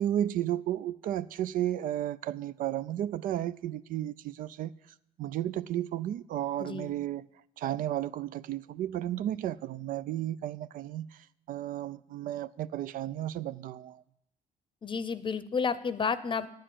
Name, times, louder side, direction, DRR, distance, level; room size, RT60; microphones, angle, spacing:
voice 1, 0.0-4.7 5.2-7.3 7.6-14.0, right 12 dB, 65° right, 0.4 m, -33 dB
voice 2, 6.6-6.9 14.8-16.5, left 5 dB, 30° left, 0.7 m, -31 dB
8.8 x 7.6 x 8.5 m
supercardioid pair, 75°, 16 cm